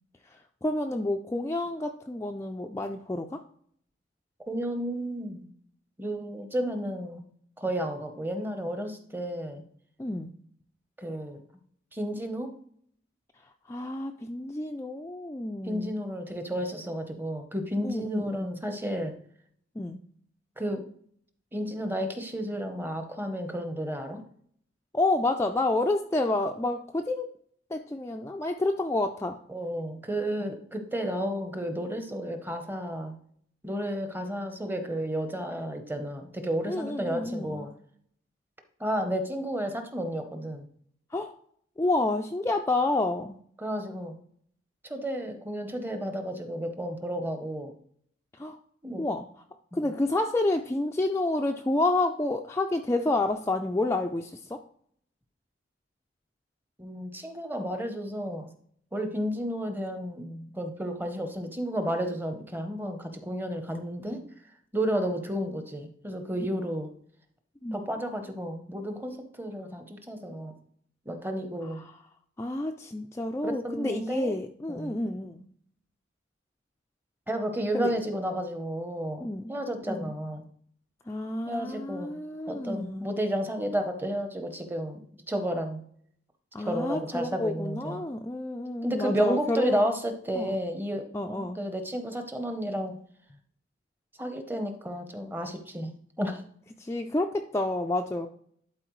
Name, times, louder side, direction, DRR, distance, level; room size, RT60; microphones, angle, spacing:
voice 1, 0.2-3.4 10.0-10.3 13.7-16.0 17.8-18.5 19.8-20.0 24.9-27.4 27.7-29.4 36.7-37.7 41.1-41.4 41.8-43.4 48.4-48.6 49.0-49.3 49.7-54.6 67.6-67.8 71.6-71.9 72.4-75.4 77.7-77.9 79.2-79.5 79.8-80.2 81.1-83.1 86.5-89.8 90.4-90.6 91.1-91.6 96.8-98.3, left 2 dB, 15° left, 3 dB, 0.3 m, -29 dB
voice 2, 4.5-5.5 6.0-7.2 7.6-9.6 11.0-11.4 11.9-12.5 15.6-19.1 20.6-20.9 21.5-24.2 29.5-33.2 33.6-37.7 38.8-40.7 43.6-44.2 44.8-47.7 48.8-49.0 49.7-49.9 56.8-58.5 58.9-64.2 64.7-66.9 67.7-70.5 71.1-71.8 73.4-74.3 74.7-74.9 77.3-80.4 81.5-82.1 82.5-85.8 86.6-88.0 88.8-93.0 94.2-95.9 96.2-96.4, equal, 10° right, 7 dB, 0.7 m, -32 dB
11.5 x 4.3 x 3.1 m, 0.62 s
head